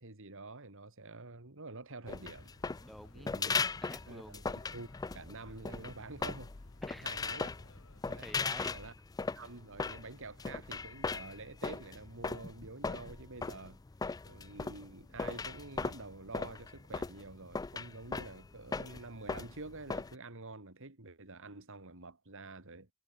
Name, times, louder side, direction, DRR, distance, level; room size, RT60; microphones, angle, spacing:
voice 1, 0.0-2.5 3.1-3.5 4.1-6.5 6.9-7.6 8.0-8.3 8.7-8.9 9.3-13.8 14.3-22.9, right 3 dB, 60° right, 2.7 m, -48 dB
sound 1, 2.0-8.9, left 1 dB, 65° left, 7.7 m, -60 dB
sound 2, 2.1-20.1, left 4 dB, 15° left, 0.4 m, -38 dB
voice 2, 2.8-4.4 6.8-7.1 8.2-8.8, equal, ahead, 2.6 m, -50 dB
head